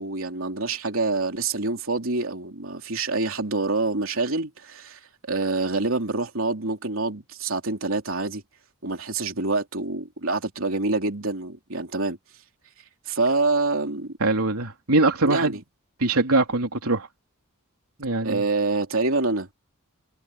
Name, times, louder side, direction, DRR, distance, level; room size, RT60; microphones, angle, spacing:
voice 1, 0.0-5.0 5.3-8.4 8.8-12.2 13.1-14.1 15.2-15.6 18.2-19.5, right 3 dB, 65° right, 3.5 m, -26 dB
voice 2, 14.2-15.5 16.0-17.1 18.0-18.4, right 2 dB, 85° right, 3.4 m, -22 dB
head